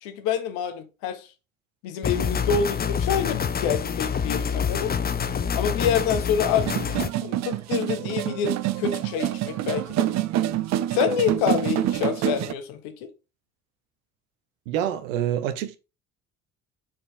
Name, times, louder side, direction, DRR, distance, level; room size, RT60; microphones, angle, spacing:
voice 1, 0.0-1.3 1.8-4.9 5.5-6.7 7.2-10.1 10.9-13.1, left 7 dB, 65° left, 1.2 m, -27 dB
sound 1, 2.0-7.1, left 7 dB, 25° left, 0.7 m, -26 dB
sound 2, 6.7-12.5, right 13 dB, 45° right, 0.5 m, -26 dB
voice 2, 14.7-15.8, right 10 dB, 75° right, 0.9 m, -26 dB
4.5 x 4.3 x 4.9 m
hypercardioid pair, 55°, 40 cm